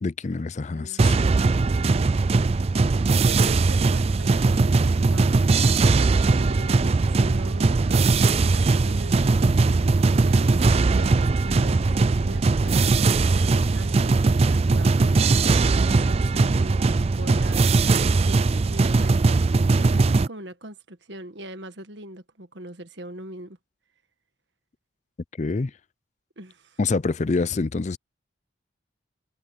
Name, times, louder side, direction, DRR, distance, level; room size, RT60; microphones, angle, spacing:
voice 1, 0.0-1.3 25.4-25.7 26.8-28.0, left 3 dB, 40° left, 0.4 m, -26 dB
voice 2, 0.7-1.0 3.1-5.5 5.9-19.4 19.7-23.6 26.4-26.8, right 1 dB, 65° right, 1.6 m, -41 dB
sound 1, 1.0-20.3, right 3 dB, 30° right, 0.4 m, -20 dB
sound 2, 9.5-15.7, equal, 15° right, 2.9 m, -40 dB
head